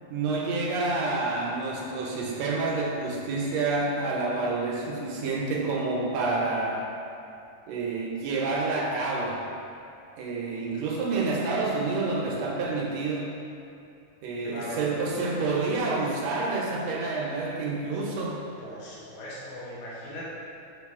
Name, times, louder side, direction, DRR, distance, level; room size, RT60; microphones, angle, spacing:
voice 1, 0.1-6.9 7.7-9.4 10.2-13.4 14.2-18.4, right 3 dB, 70° right, -2 dB, 1.7 m, -28 dB
voice 2, 14.4-14.8 18.6-20.3, equal, 75° left, -7 dB, 2.6 m, -39 dB
8.3 x 3.5 x 3.6 m, 2.7 s
omnidirectional pair, 3.4 m